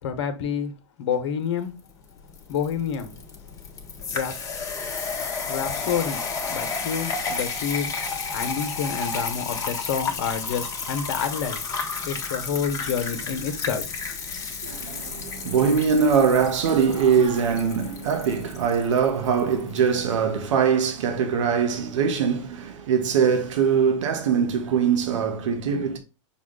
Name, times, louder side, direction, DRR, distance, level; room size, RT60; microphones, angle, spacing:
voice 1, 0.0-0.7 1.0-1.7 2.5-3.2 4.1-4.3 5.5-6.2 6.5-7.9 8.3-11.6 12.1-13.8, left 7 dB, 65° left, 0.9 m, -28 dB
sound 1, 1.8-19.8, left 4 dB, 20° left, 1.0 m, -32 dB
voice 2, 14.6-26.0, right 6 dB, 75° right, 1.0 m, -22 dB
5.8 x 2.3 x 3.7 m
hypercardioid pair, 125°, 16 cm